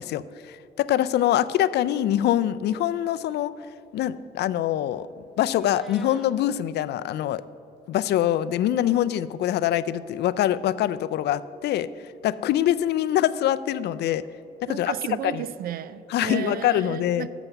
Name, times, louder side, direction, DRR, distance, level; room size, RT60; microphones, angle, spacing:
voice 1, 0.0-3.5 3.9-5.1 5.4-7.4 7.9-11.9 12.2-14.2 14.7-14.9 15.2-15.4 16.1-17.3, left 12 dB, 70° left, 0.4 m, -24 dB
Meow, 5.3-6.3, left 1 dB, ahead, 1.0 m, -50 dB
voice 2, 14.7-17.3, right 10 dB, 55° right, 0.4 m, -33 dB
7.8 x 5.9 x 7.8 m
cardioid pair, 95°, 18 cm